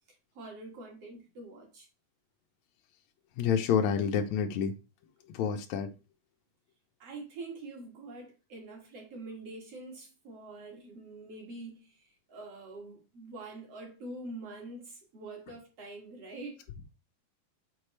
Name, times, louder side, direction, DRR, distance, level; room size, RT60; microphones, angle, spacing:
voice 1, 0.1-1.9 7.0-16.6, right 2 dB, 50° right, 2.3 m, -45 dB
voice 2, 3.4-4.7 5.3-5.9, left 7 dB, 85° left, 1.6 m, -28 dB
8.3 x 4.5 x 3.2 m
omnidirectional pair, 4.2 m